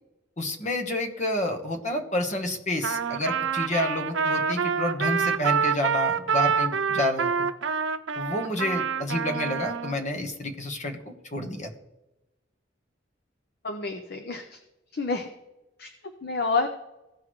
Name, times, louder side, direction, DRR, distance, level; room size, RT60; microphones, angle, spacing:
voice 1, 0.4-7.5 8.2-11.7, left 1 dB, 40° left, 4 dB, 1.2 m, -29 dB
Trumpet, 2.8-9.9, right 6 dB, 80° right, 0.6 m, -26 dB
voice 2, 13.6-14.6 14.9-15.3 15.8-15.9 16.2-16.7, left 3 dB, 55° left, 6 dB, 0.7 m, -28 dB
16.0 x 5.9 x 3.1 m, 0.95 s
head